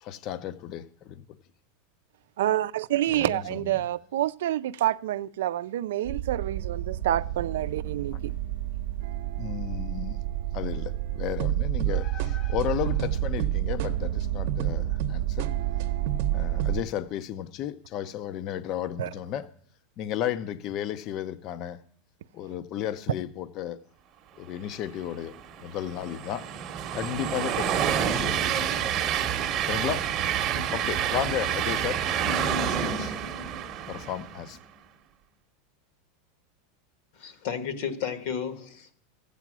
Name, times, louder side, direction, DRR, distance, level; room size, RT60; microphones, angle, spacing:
voice 1, 0.0-1.2 3.1-3.6 9.4-10.2 10.5-15.5 16.3-19.5 20.0-21.8 22.3-23.8 24.4-25.3 25.6-26.5 26.9-28.9 29.6-30.1 30.7-33.2 33.9-34.6, left 11 dB, 35° left, 0.6 m, -34 dB
voice 2, 2.4-8.3 19.0-19.1, right 13 dB, 80° right, 0.4 m, -28 dB
sound 1, 6.0-16.8, right 12 dB, 60° right, 0.8 m, -29 dB
Train, 25.1-34.5, right 8 dB, 30° right, 0.9 m, -28 dB
voice 3, 37.1-38.9, left 7 dB, 55° left, 1.4 m, -33 dB
14.5 x 8.2 x 6.1 m
supercardioid pair, 155°, 0 cm